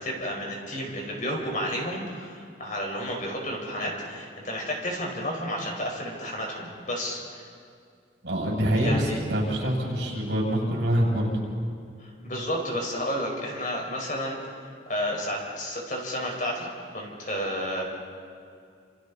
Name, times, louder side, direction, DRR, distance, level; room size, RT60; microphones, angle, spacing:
voice 1, 0.0-7.4 8.8-9.2 12.0-14.4 14.9-17.8, equal, 45° left, 0 dB, 5.0 m, -31 dB
voice 2, 8.2-11.3, equal, 65° right, -3 dB, 7.5 m, -25 dB
29.0 x 28.0 x 4.2 m, 2.3 s
head